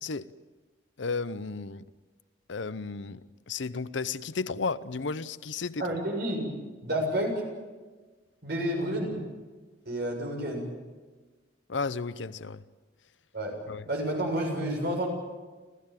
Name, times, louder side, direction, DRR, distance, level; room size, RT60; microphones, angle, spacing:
voice 1, 0.0-0.3 1.0-1.8 2.5-6.0 11.7-12.6 13.7-13.8, left 4 dB, 70° left, 0.7 m, -33 dB
voice 2, 5.8-6.5 6.8-7.4 8.4-9.2 9.9-10.7 13.3-13.6 13.9-15.1, right 1 dB, 55° right, 7.0 m, -30 dB
29.5 x 14.5 x 9.0 m
head